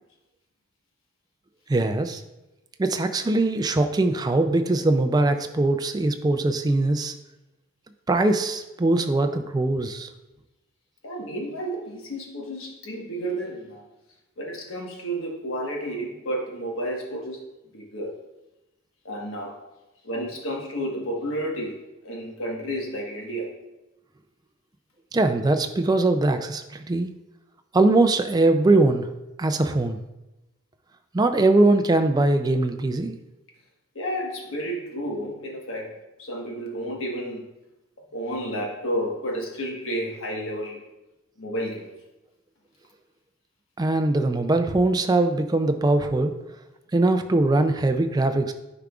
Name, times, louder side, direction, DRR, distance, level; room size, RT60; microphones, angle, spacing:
voice 1, 1.7-2.2 2.8-7.1 8.1-10.1 25.1-27.1 27.7-29.1 29.4-30.0 31.1-33.2 43.8-46.3 46.9-48.5, right 2 dB, 20° right, 7 dB, 0.3 m, -21 dB
voice 2, 11.0-13.8 14.4-17.4 17.7-18.2 19.0-19.5 20.0-23.5 33.9-37.4 38.1-40.8 41.4-41.9, equal, 65° left, 0 dB, 1.3 m, -31 dB
10.0 x 4.8 x 2.3 m, 0.99 s
head